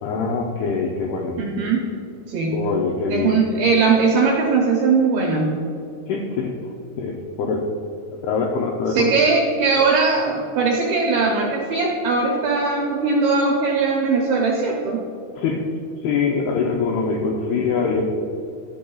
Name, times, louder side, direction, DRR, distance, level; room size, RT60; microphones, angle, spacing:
voice 1, 0.0-1.4 2.5-3.4 6.1-6.5 7.0-7.7 8.2-9.1 15.4-15.6 16.0-18.1, left 4 dB, 85° left, 0 dB, 2.2 m, -23 dB
voice 2, 1.4-1.8 2.3-2.6 3.1-5.5 8.9-15.0, right 4 dB, 80° right, -1 dB, 2.2 m, -20 dB
12.0 x 8.0 x 2.3 m, 2.5 s
omnidirectional pair, 5.3 m